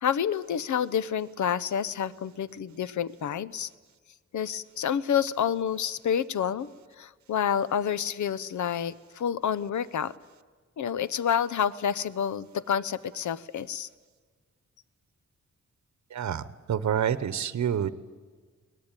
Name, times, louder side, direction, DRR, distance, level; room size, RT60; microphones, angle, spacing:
voice 1, 0.0-3.7 4.3-6.7 7.0-10.1 10.8-13.9, left 8 dB, 80° left, 17 dB, 0.7 m, -28 dB
voice 2, 16.1-17.9, right 9 dB, 70° right, 14 dB, 0.9 m, -28 dB
22.5 x 19.0 x 9.1 m, 1.5 s
wide cardioid pair, 120°, 30 cm